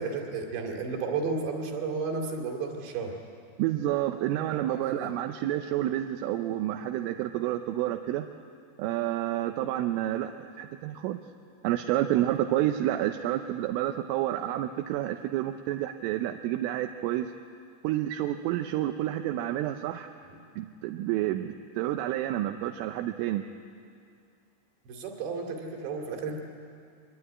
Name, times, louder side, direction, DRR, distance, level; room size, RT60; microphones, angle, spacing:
voice 1, 0.0-3.2 4.7-5.2 24.9-26.4, right 4 dB, 60° right, 2 dB, 4.7 m, -33 dB
voice 2, 3.6-8.3 8.8-11.2 11.6-17.3 17.8-20.1 20.6-23.5, right 13 dB, 85° right, 6 dB, 3.3 m, -29 dB
23.5 x 22.5 x 9.7 m, 2.3 s
omnidirectional pair, 5.7 m